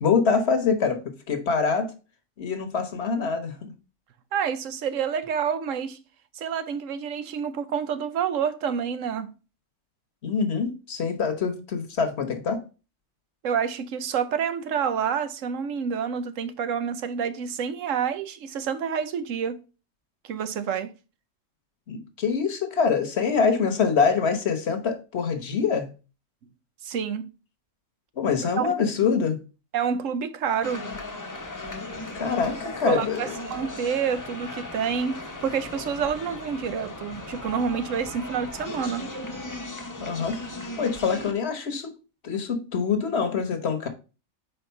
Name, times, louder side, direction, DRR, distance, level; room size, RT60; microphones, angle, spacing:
voice 1, 0.0-1.0 1.3-1.9 2.4-3.7 10.2-12.6 21.9-25.9 28.2-29.4 32.1-33.3 40.0-40.5 40.8-41.9 42.2-43.9, left 5 dB, 60° left, 1.2 m, -25 dB
voice 2, 4.3-6.0 6.3-9.3 13.4-19.6 20.2-20.9 26.8-27.3 28.6-28.9 29.7-30.8 32.8-39.1, right 7 dB, 85° right, 1.1 m, -28 dB
sound 1, 30.6-41.3, left 2 dB, 20° left, 0.8 m, -37 dB
4.7 x 4.5 x 5.6 m
omnidirectional pair, 1.3 m